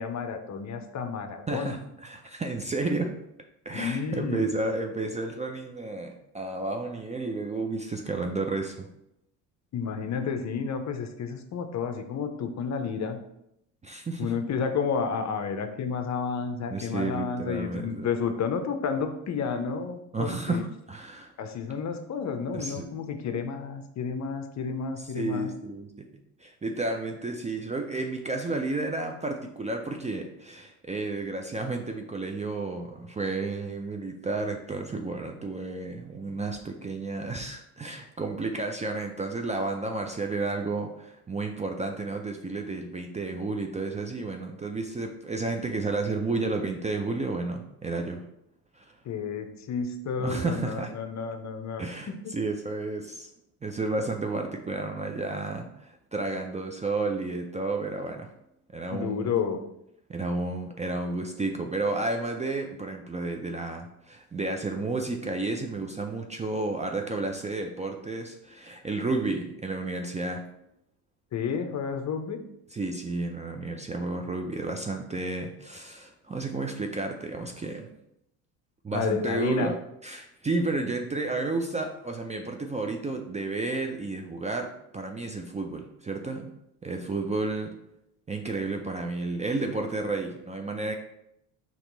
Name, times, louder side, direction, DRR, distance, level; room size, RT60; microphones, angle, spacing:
voice 1, 0.0-1.8 3.7-4.5 9.7-13.2 14.2-20.6 21.4-25.5 49.0-52.3 58.9-59.6 71.3-72.4 78.9-79.7, left 6 dB, 40° left, 7 dB, 0.6 m, -31 dB
voice 2, 1.5-3.1 3.7-8.9 13.8-14.3 16.7-18.1 20.1-21.3 22.5-22.8 25.1-26.1 26.4-48.2 48.8-48.9 50.2-50.9 51.8-53.3 53.6-58.3 58.7-59.3 60.1-70.5 72.7-77.9 78.8-86.5 86.8-87.7 88.3-90.9, right 3 dB, 15° right, 4 dB, 0.4 m, -32 dB
4.4 x 3.0 x 3.8 m, 0.79 s
supercardioid pair, 75°, 42 cm